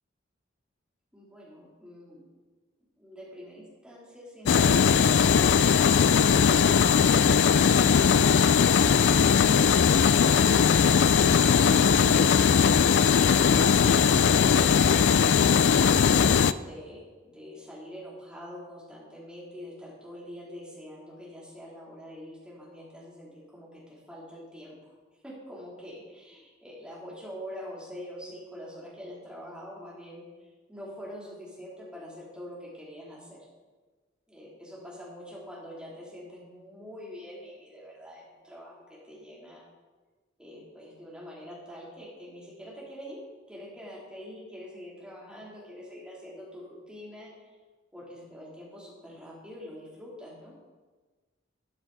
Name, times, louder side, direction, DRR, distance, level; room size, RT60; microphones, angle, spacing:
voice 1, 1.1-2.3 3.0-9.4 15.8-24.9 25.2-33.5 34.3-39.7 40.4-43.2 43.5-47.5 47.9-50.5, equal, 5° right, -6 dB, 3.1 m, -45 dB
sound 1, 4.4-16.5, left 7 dB, 60° left, 0.3 m, -20 dB
13.0 x 10.0 x 4.0 m, 1.3 s
head